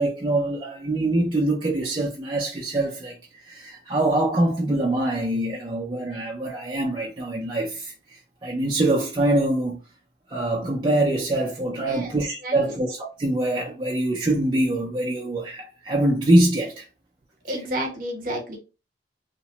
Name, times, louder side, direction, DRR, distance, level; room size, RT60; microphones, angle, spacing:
voice 1, 0.0-3.1 3.4-7.9 8.4-9.8 10.3-16.8, right 1 dB, 25° right, 0.4 m, -24 dB
voice 2, 11.8-12.1 12.4-12.8 17.4-18.6, right 1 dB, 50° right, 0.9 m, -31 dB
2.8 x 2.1 x 2.8 m
head